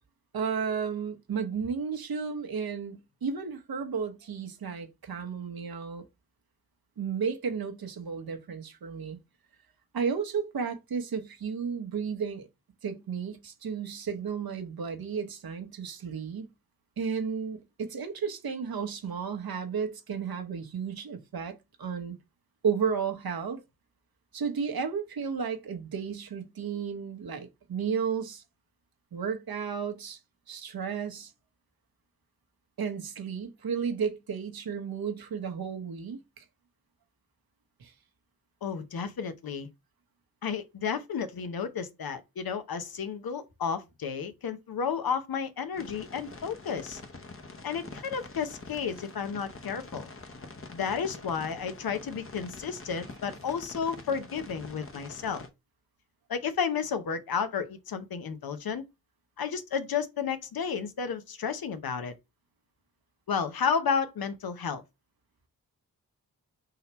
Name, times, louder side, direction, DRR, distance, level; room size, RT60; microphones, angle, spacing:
voice 1, 0.3-6.1 7.0-9.2 9.9-12.5 12.8-16.5 17.0-22.2 22.6-23.6 24.3-28.4 29.1-30.2 30.5-31.3 32.8-36.4 37.8-37.9, right 6 dB, 70° right, 1.0 m, -33 dB
voice 2, 38.6-39.7 40.4-47.0 47.6-50.1 50.7-55.4 56.3-58.8 59.4-62.1 63.3-64.8, left 6 dB, 65° left, 0.8 m, -32 dB
sound 1, 45.7-55.5, left 3 dB, 35° left, 1.0 m, -45 dB
3.9 x 2.8 x 4.3 m
cardioid pair, 40°, 38 cm